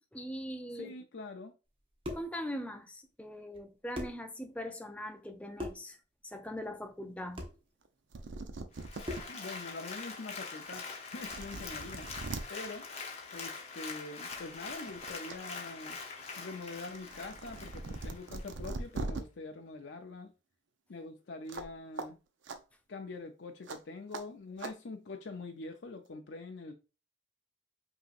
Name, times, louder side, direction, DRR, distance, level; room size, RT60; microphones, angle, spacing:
voice 1, 0.1-0.9 2.1-6.0 6.2-7.5, equal, 5° left, 0.4 m, -41 dB
voice 2, 0.8-1.5 9.3-12.1 12.5-12.8 13.3-16.0 16.4-20.3 20.9-22.2 22.9-26.7, left 3 dB, 65° left, 0.5 m, -44 dB
sound 1, 1.8-2.4 3.5-3.6 3.9-4.3 5.6-5.9 7.4-7.6 9.0-9.4, left 1 dB, 25° right, 0.8 m, -40 dB
sound 2, 7.9-9.2 9.8-9.9 10.7-10.8 11.2-12.4 13.7-13.9 14.3-15.4 15.7-19.2 21.5-21.7 22.0-22.1 22.4-22.6 23.7-23.8 24.1-24.2 24.6-24.7, right 3 dB, 75° right, 0.5 m, -41 dB
Applause, 8.8-18.5 19.0-19.1, left 4 dB, 35° left, 0.8 m, -44 dB
5.4 x 2.9 x 2.5 m
head